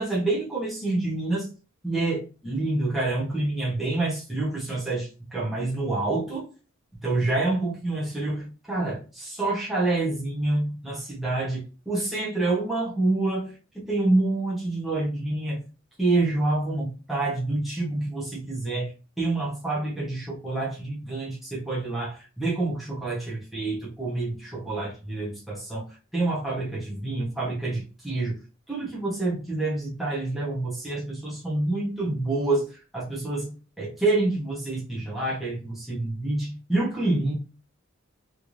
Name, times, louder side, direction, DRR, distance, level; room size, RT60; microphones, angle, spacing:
voice 1, 0.0-1.5 1.8-6.4 7.0-15.6 16.0-18.9 19.2-25.8 26.1-28.3 28.7-32.7 32.9-37.3, right 2 dB, ahead, -7 dB, 1.0 m, -27 dB
3.3 x 3.0 x 2.5 m, 0.34 s
head